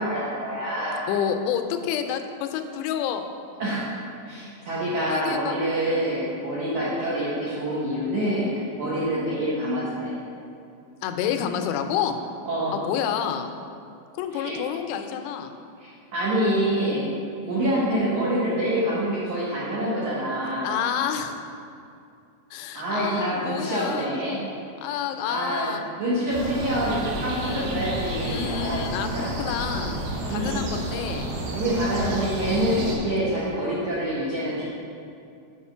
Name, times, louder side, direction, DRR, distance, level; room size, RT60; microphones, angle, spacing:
voice 1, 0.0-1.1 3.6-3.9 4.2-10.2 12.5-12.8 14.3-14.6 15.8-17.1 17.5-20.8 22.7-24.4 25.3-25.7 26.0-28.8 29.1-29.3 30.3-30.6 31.5-34.7, right 1 dB, 70° right, -8 dB, 1.8 m, -26 dB
voice 2, 1.1-3.3 5.1-5.6 5.8-6.1 11.0-12.2 12.7-13.5 14.2-15.5 17.4-17.6 20.6-21.4 22.5-24.2 24.8-25.9 27.3-27.7 28.2-30.0 30.3-31.3, left 8 dB, 90° left, 7 dB, 2.7 m, -29 dB
sound 1, 26.3-33.0, right 1 dB, 90° right, 3.3 m, -31 dB
7.1 x 5.0 x 5.5 m, 2.5 s
omnidirectional pair, 4.8 m